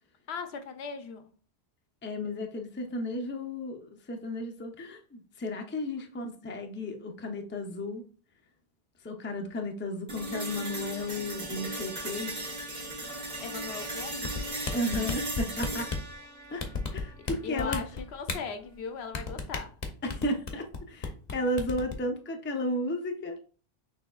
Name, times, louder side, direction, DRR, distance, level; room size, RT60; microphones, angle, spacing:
voice 1, 0.3-1.3 13.4-14.3 17.4-19.7, left 6 dB, 75° left, 0.8 m, -38 dB
voice 2, 2.0-8.0 9.0-12.3 14.7-15.9 16.5-17.8 20.0-23.4, left 1 dB, 15° left, 0.4 m, -34 dB
sound 1, 10.1-18.1, right 1 dB, 40° right, 1.4 m, -37 dB
sound 2, 14.2-16.1 16.6-17.3 17.6-18.4 19.1-20.8 21.0-21.3 21.6-21.9, left 4 dB, 45° left, 0.8 m, -32 dB
5.9 x 3.5 x 2.3 m
omnidirectional pair, 1.1 m